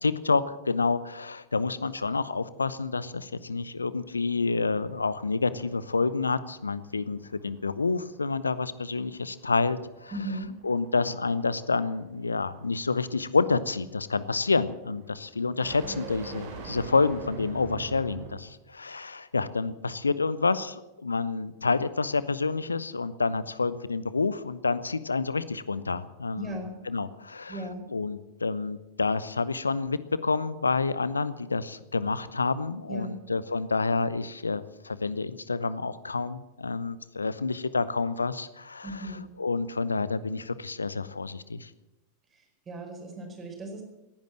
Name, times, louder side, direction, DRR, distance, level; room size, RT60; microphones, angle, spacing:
voice 1, 0.0-10.1 10.6-27.6 27.9-39.1 39.4-41.7, left 4 dB, 75° left, 16 dB, 0.8 m, -28 dB
sound 1, 4.0-18.6, right 4 dB, 50° right, 4.3 m, -45 dB
voice 2, 10.1-10.6 26.3-26.8 27.5-27.8 32.9-33.2 38.8-39.3 42.3-43.8, right 1 dB, 20° right, 3 dB, 4.8 m, -37 dB
18.0 x 10.5 x 7.6 m, 0.98 s
figure-of-eight pair, 90°, 0 cm